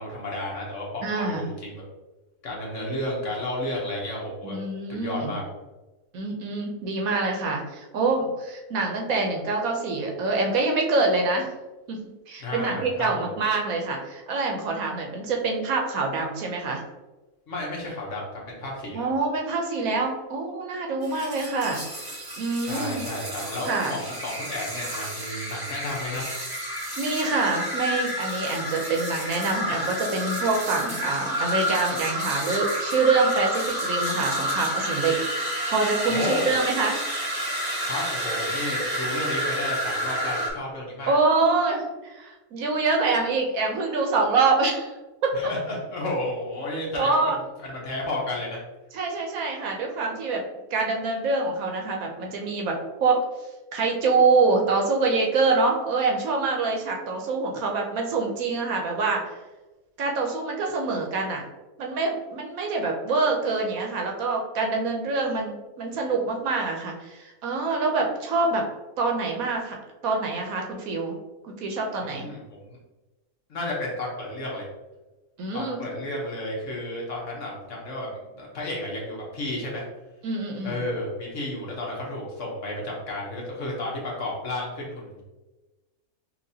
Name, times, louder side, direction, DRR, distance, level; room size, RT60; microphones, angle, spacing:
voice 1, 0.0-1.0 1.4-1.8 2.4-4.6 4.9-5.4 12.4-13.3 17.5-19.1 22.6-26.2 36.1-36.5 37.8-41.1 45.3-47.2 47.6-48.6 72.0-72.4 72.7-72.8 73.5-74.7 75.5-78.1 78.3-79.8 80.6-85.2, left 1 dB, 55° left, -3 dB, 1.2 m, -32 dB
voice 2, 1.0-1.5 4.4-5.3 6.1-11.5 11.9-12.0 12.3-16.8 18.9-21.8 22.4-23.0 23.6-24.0 27.0-37.0 41.1-45.3 46.9-47.4 48.9-50.4 50.7-53.2 53.7-59.3 60.0-61.4 61.8-68.6 69.0-69.8 70.0-71.2 71.4-72.3 75.4-75.8 80.2-80.8, right 3 dB, 70° right, 1 dB, 1.1 m, -25 dB
sound 1, 21.0-40.5, equal, 25° right, 0.5 m, -30 dB
5.8 x 2.5 x 2.7 m, 1.1 s
omnidirectional pair, 1.6 m